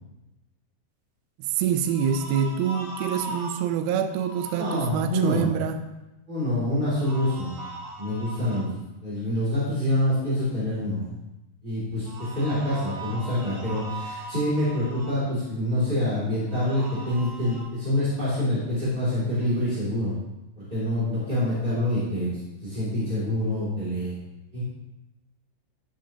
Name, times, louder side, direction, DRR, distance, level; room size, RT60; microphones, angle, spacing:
voice 1, 1.4-5.8, right 8 dB, 85° right, 8 dB, 2.1 m, -26 dB
sound 1, 1.8-3.6 4.1-4.8 7.0-8.6 12.0-15.1 16.5-17.6, right 2 dB, 60° right, 4.0 m, -39 dB
voice 2, 4.6-5.6 6.3-7.6 8.0-11.2 11.6-20.1 20.5-24.1 24.5-24.6, left 1 dB, 15° right, -10 dB, 1.7 m, -26 dB
11.5 x 8.6 x 2.9 m, 0.98 s
omnidirectional pair, 5.2 m